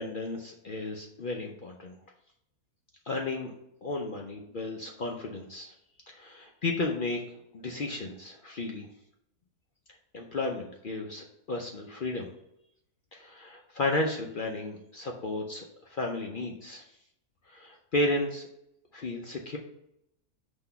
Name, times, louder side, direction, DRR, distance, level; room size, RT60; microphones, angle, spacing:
voice 1, 0.0-2.0 3.1-3.5 3.8-5.7 6.1-7.2 7.5-8.9 10.1-12.3 13.1-16.8 17.5-18.4 18.9-19.6, left 2 dB, 60° left, 1 dB, 0.5 m, -33 dB
5.9 x 3.0 x 5.5 m, 0.79 s
omnidirectional pair, 1.6 m